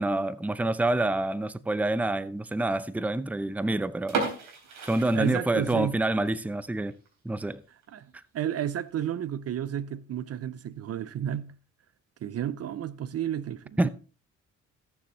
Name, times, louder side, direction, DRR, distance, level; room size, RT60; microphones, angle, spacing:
voice 1, 0.0-4.3 4.8-6.9 7.2-7.6 13.8-13.9, right 2 dB, 5° right, 0.6 m, -27 dB
sound 1, 4.0-5.9 6.3-6.4 6.9-7.1 7.5-7.6 7.8-7.9 8.7-9.0, right 4 dB, 85° right, 3.6 m, -33 dB
voice 2, 5.1-6.0 7.9-11.6 12.2-13.9, right 10 dB, 55° right, 0.6 m, -32 dB
19.5 x 6.9 x 3.1 m
cardioid pair, 90°, 30 cm